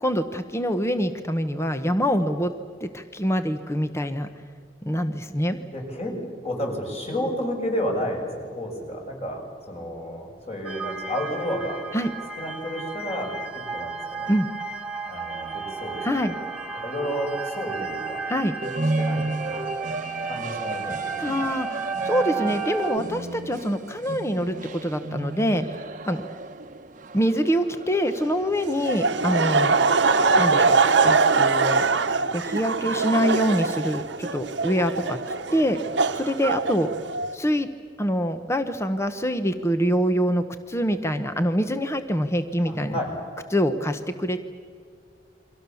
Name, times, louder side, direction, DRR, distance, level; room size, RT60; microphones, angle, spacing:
voice 1, 0.0-2.5 2.8-4.3 4.8-5.6 11.9-12.1 14.3-14.5 16.0-16.3 18.3-18.6 21.2-25.6 26.1-26.2 27.1-29.8 30.4-30.8 31.0-31.8 32.3-35.2 35.5-35.8 36.1-36.9 37.3-37.7 38.0-43.0 43.5-44.4, equal, 15° left, 9 dB, 1.0 m, -25 dB
voice 2, 5.7-6.1 6.4-11.8 12.4-13.4 13.7-14.3 15.1-16.4 16.8-18.3 18.6-18.7 19.0-19.6 20.3-21.2 42.6-43.2, equal, 35° left, 1 dB, 6.3 m, -31 dB
sound 1, 10.6-23.0, right 5 dB, 10° right, 1.9 m, -33 dB
sound 2, 18.6-28.8, right 2 dB, 45° right, 1.1 m, -33 dB
Laughter, 28.8-37.3, right 4 dB, 70° right, 1.2 m, -22 dB
29.5 x 24.0 x 7.1 m, 2.2 s
head